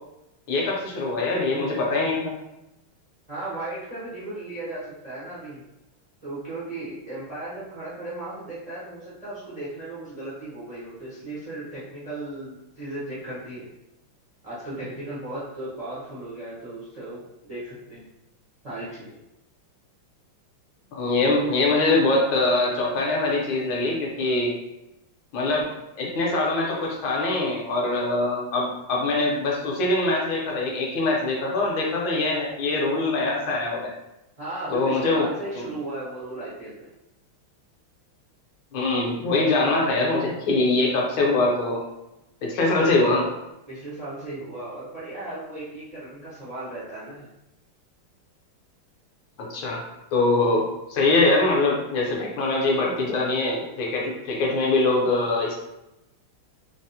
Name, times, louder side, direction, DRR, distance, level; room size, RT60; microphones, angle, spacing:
voice 1, 0.5-2.3 20.9-24.5 25.3-33.9 34.7-35.3 38.7-41.8 42.4-43.3 49.4-49.8 50.1-50.6 50.9-55.6, left 2 dB, 70° left, -2 dB, 1.4 m, -23 dB
voice 2, 3.3-5.6 6.2-13.7 14.4-18.0 18.6-19.1 34.4-36.9 42.7-43.0 43.7-47.3, right 2 dB, 85° right, -9 dB, 0.3 m, -36 dB
4.1 x 2.0 x 2.7 m, 0.91 s
omnidirectional pair, 2.4 m